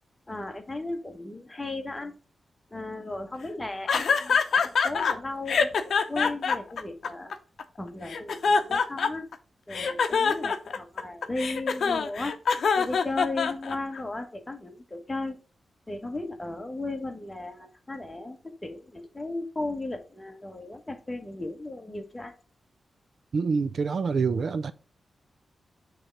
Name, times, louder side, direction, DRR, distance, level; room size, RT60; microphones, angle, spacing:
voice 1, 0.3-2.2 2.7-7.3 7.8-9.3 9.7-12.4 12.7-15.4 15.9-22.3, left 2 dB, 15° left, 1.1 m, -36 dB
sound 1, 3.9-5.1 5.5-7.6 8.1-9.3 9.7-14.0, left 5 dB, 70° left, 0.7 m, -24 dB
voice 2, 23.3-24.7, right 5 dB, 60° right, 0.4 m, -26 dB
6.2 x 3.3 x 5.8 m
wide cardioid pair, 120°, 0 cm